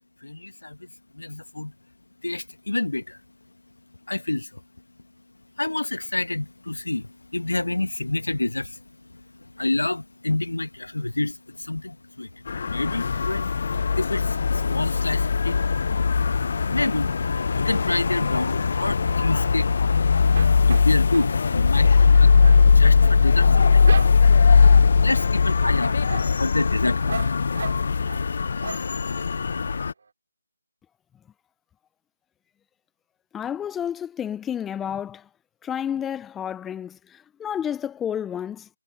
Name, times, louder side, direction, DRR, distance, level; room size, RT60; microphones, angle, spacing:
voice 1, 0.2-0.8 1.1-1.7 2.2-3.2 4.1-4.5 5.6-8.8 9.6-13.5 14.0-15.6 16.7-17.1 17.6-19.8 20.7-22.3 22.6-23.9 25.0-27.4, left 2 dB, 80° left, 1.4 m, -28 dB
sound 1, 12.5-29.9, left 5 dB, 50° left, 0.8 m, -20 dB
sound 2, 17.4-18.1 18.6-19.9 20.2-24.6 25.0-25.5 25.8-28.3 28.6-29.3 29.7-29.8 30.0-30.1, right 4 dB, 55° right, 3.0 m, -38 dB
voice 2, 33.3-35.3 35.6-38.7, left 9 dB, 5° left, 0.5 m, -30 dB
figure-of-eight pair, 160°, 0 cm